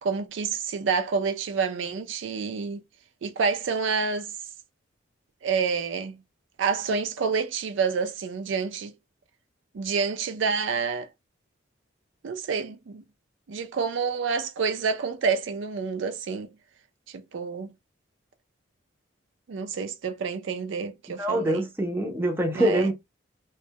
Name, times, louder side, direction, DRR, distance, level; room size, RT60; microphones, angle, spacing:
voice 1, 0.0-2.8 3.2-4.3 5.4-6.2 6.6-8.9 9.7-11.1 12.2-13.0 13.5-16.5 17.1-17.7 19.5-21.7 22.5-22.9, right 5 dB, 65° right, 0.4 m, -28 dB
voice 2, 21.2-22.9, right 1 dB, 10° right, 0.5 m, -25 dB
2.1 x 2.1 x 2.7 m
head